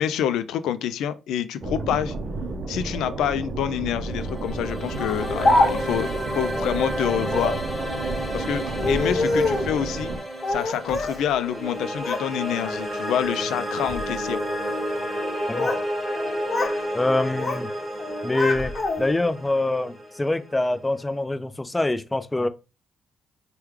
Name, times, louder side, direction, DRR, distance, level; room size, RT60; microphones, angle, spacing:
voice 1, 0.0-2.1 2.7-7.6 8.3-10.1 10.5-14.4, left 9 dB, 85° left, 0.3 m, -27 dB
sound 1, 1.6-10.2, right 2 dB, 50° right, 0.5 m, -32 dB
sound 2, 3.9-21.0, equal, 10° right, 1.3 m, -31 dB
Speech, 5.0-6.1 7.2-7.7 8.7-9.7 10.4-11.2 11.5-12.3 12.6-13.0 13.7-14.0 15.1-15.9 16.1-16.8 17.1-17.7 18.0-19.2, left 2 dB, 35° left, 1.2 m, -26 dB
voice 2, 16.9-17.7 18.2-18.7 19.0-22.5, left 2 dB, 15° left, 0.4 m, -24 dB
3.4 x 2.2 x 3.1 m
cardioid pair, 90°, 0 cm